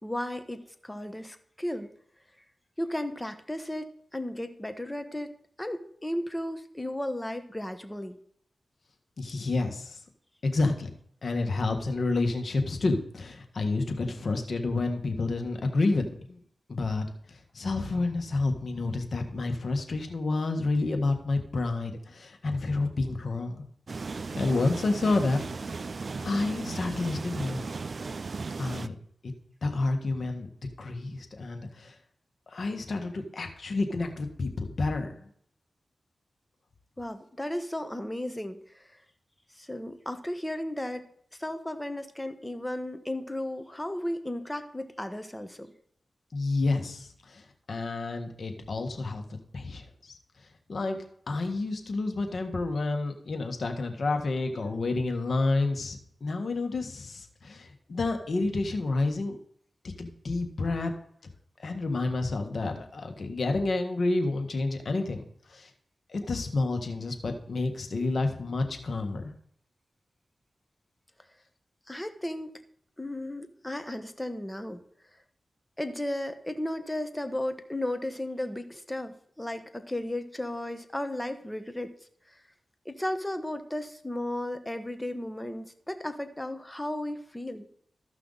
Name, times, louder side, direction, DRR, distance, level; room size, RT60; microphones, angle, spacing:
voice 1, 0.0-1.9 2.8-5.3 5.6-8.2 37.0-39.0 39.5-45.7 71.9-72.5 73.0-74.8 75.8-81.9 82.8-87.7, left 1 dB, 15° left, 9 dB, 1.2 m, -34 dB
voice 2, 9.2-10.0 10.4-10.9 11.2-16.4 16.7-23.6 24.3-25.7 26.2-27.7 28.6-28.9 29.2-29.3 29.6-30.5 30.8-31.9 32.5-35.3 46.3-50.2 50.7-51.0 51.3-59.4 59.8-60.9 61.6-65.2 65.5-65.7 66.1-69.3, left 3 dB, 65° left, 5 dB, 1.5 m, -29 dB
sound 1, 23.9-28.9, right 4 dB, 60° right, 0.3 m, -36 dB
14.0 x 5.7 x 4.0 m, 0.65 s
cardioid pair, 50°, 0 cm